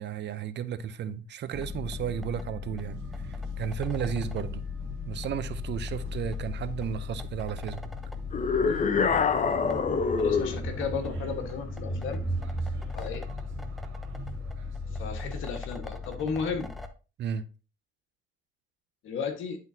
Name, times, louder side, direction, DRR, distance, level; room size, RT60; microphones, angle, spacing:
voice 1, 0.0-4.6 5.1-7.9 17.2-17.4, right 8 dB, 60° right, 0.7 m, -34 dB
sound 1, 1.5-16.9, left 2 dB, ahead, 0.8 m, -36 dB
sound 2, 2.8-15.4, right 2 dB, 90° right, 1.6 m, -46 dB
sound 3, 8.3-10.6, left 5 dB, 40° left, 0.7 m, -25 dB
voice 2, 10.2-12.2 12.9-13.3 15.0-16.7 19.0-19.6, left 5 dB, 85° left, 1.4 m, -34 dB
11.0 x 3.9 x 2.8 m
cardioid pair, 90°, 20 cm